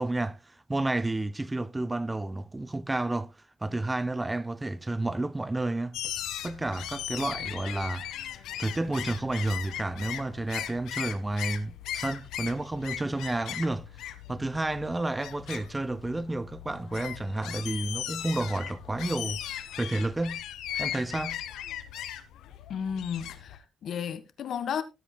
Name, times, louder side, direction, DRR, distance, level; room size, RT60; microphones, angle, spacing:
voice 1, 0.0-6.0 6.4-20.4 20.8-21.4, right 2 dB, 15° right, 0.5 m, -31 dB
sound 1, 5.9-23.6, left 11 dB, 85° left, 1.4 m, -38 dB
voice 2, 22.7-24.8, left 7 dB, 65° left, 1.5 m, -33 dB
19.0 x 8.2 x 2.2 m
cardioid pair, 90°, 0 cm